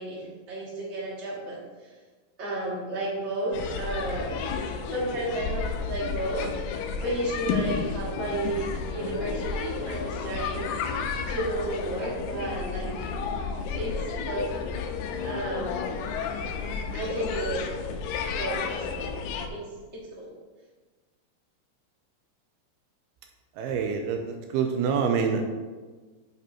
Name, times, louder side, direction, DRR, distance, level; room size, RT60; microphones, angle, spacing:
voice 1, 0.0-1.9 2.4-4.5 4.9-10.7 11.3-13.1 13.8-13.9 14.2-14.5 15.2-16.1 16.9-17.6 18.3-19.2 19.5-19.6 19.9-20.3, right 1 dB, 25° right, -6 dB, 1.8 m, -32 dB
sound 1, 3.5-19.5, left 5 dB, 90° left, 2.7 m, -32 dB
voice 2, 23.6-25.4, right 6 dB, 85° right, 4 dB, 2.5 m, -26 dB
9.7 x 6.7 x 3.0 m, 1.3 s
omnidirectional pair, 4.7 m